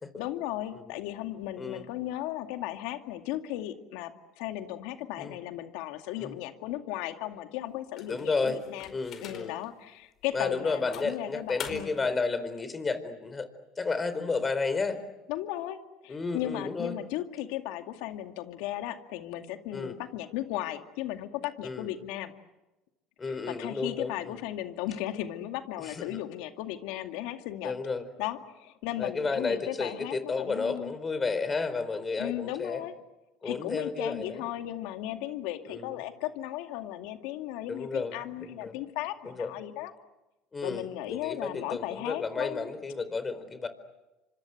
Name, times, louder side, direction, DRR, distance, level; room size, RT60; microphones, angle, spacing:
voice 1, 0.1-8.9 9.2-12.0 15.3-15.8 16.0-22.3 23.3-27.7 28.2-30.9 32.2-32.9 33.4-39.9 40.6-42.7, left 14 dB, 75° left, 7 dB, 2.3 m, -36 dB
sound 1, 8.0-9.7 10.2-10.4 10.9-12.1, left 8 dB, 55° left, 4.7 m, -44 dB
voice 2, 8.1-8.6 8.9-9.6 10.3-13.5 13.8-15.0 16.1-17.0 19.7-19.9 21.6-21.9 23.2-24.4 25.8-26.2 27.6-28.1 29.0-32.9 33.4-34.5 35.7-36.0 37.7-38.8 39.2-39.5 40.5-43.7, left 4 dB, 25° left, 12 dB, 4.4 m, -32 dB
29.0 x 26.0 x 7.9 m, 1.0 s
supercardioid pair, 85°, 0 cm